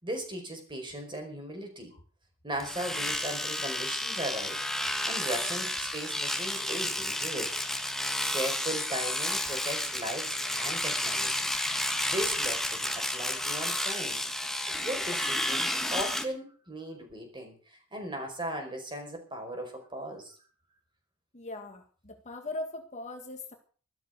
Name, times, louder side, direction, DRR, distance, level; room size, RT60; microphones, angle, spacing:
voice 1, 0.0-1.9 2.4-4.6 5.0-7.7 8.3-11.5 12.0-14.3 14.8-20.4, right 1 dB, 20° right, 4 dB, 5.0 m, -37 dB
Domestic sounds home sounds, 2.6-16.2, left 1 dB, ahead, 1.5 m, -31 dB
voice 2, 21.3-23.5, left 2 dB, 35° left, 5 dB, 1.8 m, -39 dB
13.0 x 13.0 x 6.7 m, 0.42 s
head